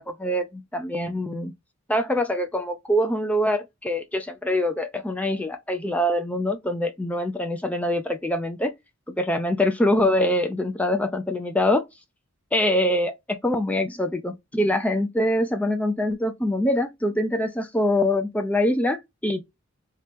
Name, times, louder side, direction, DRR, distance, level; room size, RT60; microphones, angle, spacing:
voice 1, 0.0-1.5 1.9-8.7 9.1-11.9 12.5-19.4, left 1 dB, 5° left, 0.3 m, -24 dB
3.0 x 2.9 x 3.4 m
head